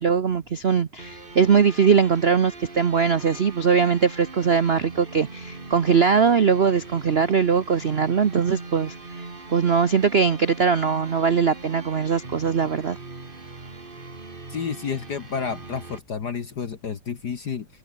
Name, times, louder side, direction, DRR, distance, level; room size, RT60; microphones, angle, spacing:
voice 1, 0.0-8.9 9.5-13.0, right 6 dB, 55° right, 0.6 m, -21 dB
sound 1, 1.0-16.0, right 3 dB, 25° right, 2.5 m, -41 dB
voice 2, 14.5-17.7, left 6 dB, 50° left, 2.0 m, -30 dB
open air
omnidirectional pair, 2.3 m